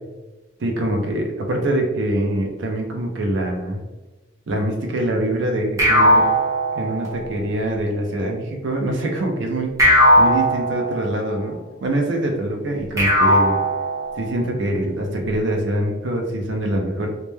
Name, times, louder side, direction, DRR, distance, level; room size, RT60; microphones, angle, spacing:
voice 1, 0.6-3.8 4.5-6.3 6.7-9.7 10.2-13.6 14.2-17.1, right 1 dB, 65° right, 2 dB, 0.5 m, -24 dB
sound 1, 5.8-7.4 9.8-11.4 13.0-14.5, equal, 15° right, 0.6 m, -18 dB
2.1 x 2.1 x 3.1 m, 1.1 s
head